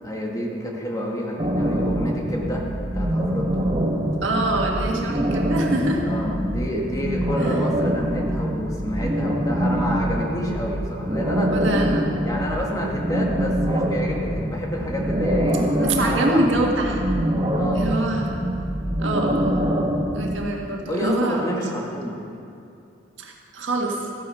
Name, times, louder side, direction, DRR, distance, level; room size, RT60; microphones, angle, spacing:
voice 1, 0.0-2.6 2.9-3.7 5.9-11.5 12.2-16.4 17.5-17.9 20.9-22.2, equal, 20° left, -2 dB, 1.6 m, -29 dB
sound 1, 1.4-20.4, equal, 25° right, 1.2 m, -24 dB
voice 2, 4.2-6.0 7.4-7.6 11.5-12.2 15.8-17.0 17.7-18.3 19.0-19.6 20.1-21.4 23.2-24.1, right 1 dB, 80° right, 0 dB, 1.7 m, -25 dB
14.0 x 9.5 x 5.6 m, 2.6 s
head